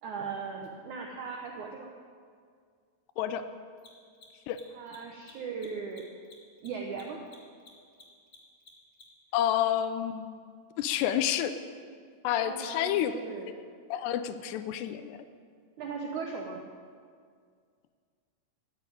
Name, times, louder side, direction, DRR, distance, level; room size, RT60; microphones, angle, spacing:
voice 1, 0.0-1.9 4.7-6.1 6.6-7.2 12.4-13.6 15.8-16.6, right 5 dB, 90° right, 1 dB, 1.7 m, -38 dB
Mechanisms, 0.6-0.7 3.7-9.3, left 3 dB, 65° left, 0.7 m, -55 dB
voice 2, 9.3-10.3 10.8-11.5 12.2-13.1 13.9-15.2, left 11 dB, 80° left, 11 dB, 2.7 m, -29 dB
13.5 x 8.6 x 9.1 m, 2.1 s
omnidirectional pair, 4.9 m